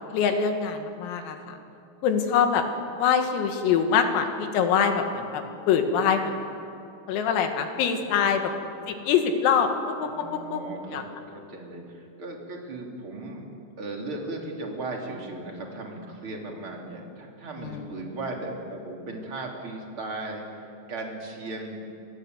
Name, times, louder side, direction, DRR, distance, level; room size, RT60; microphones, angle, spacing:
voice 1, 0.0-1.6 2.0-2.6 3.0-6.6 7.1-8.4 8.9-10.1 10.5-10.6 10.9-11.0 17.6-17.8, left 7 dB, 85° left, 5 dB, 4.6 m, -24 dB
voice 2, 8.0-8.4 10.0-13.5 13.8-21.9, right 2 dB, 30° right, 0 dB, 3.6 m, -37 dB
29.0 x 23.5 x 8.1 m, 2.7 s
omnidirectional pair, 6.0 m